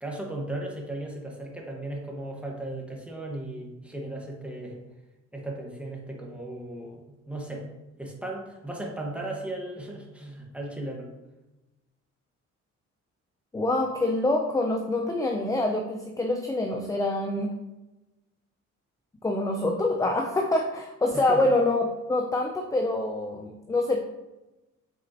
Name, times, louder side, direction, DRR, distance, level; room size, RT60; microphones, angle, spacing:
voice 1, 0.0-4.8 5.3-7.6 8.0-11.1 21.1-21.4, right 1 dB, 5° right, -1 dB, 1.5 m, -36 dB
voice 2, 13.5-17.5 19.2-24.0, left 2 dB, 10° left, 2 dB, 0.6 m, -26 dB
7.8 x 4.1 x 3.0 m, 1.0 s
cardioid pair, 90°, 30 cm